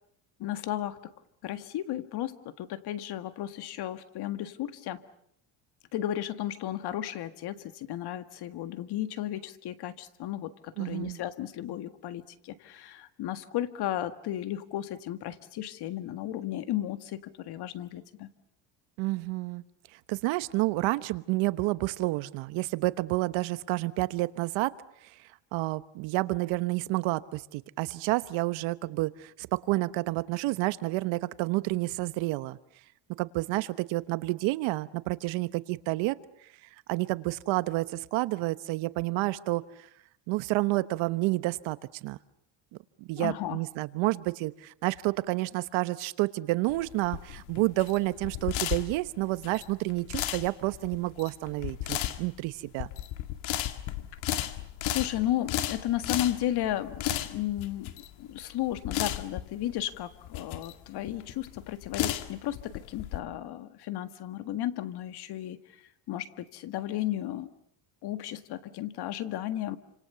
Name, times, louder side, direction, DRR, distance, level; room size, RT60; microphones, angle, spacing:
voice 1, 0.4-1.0 1.4-5.0 5.9-18.3 43.2-43.6 54.1-54.2 54.9-57.9 58.2-65.8 66.1-67.5 68.0-69.8, left 13 dB, 55° left, 11 dB, 1.8 m, -34 dB
voice 2, 10.8-11.2 19.0-19.6 20.1-24.8 25.5-32.6 33.2-36.2 36.9-39.6 40.3-42.2 43.0-52.9, right 20 dB, 90° right, 15 dB, 1.2 m, -29 dB
sound 1, 46.7-63.2, left 13 dB, 85° left, 2.1 m, -34 dB
28.5 x 26.5 x 7.0 m, 0.70 s
cardioid pair, 155°, 46 cm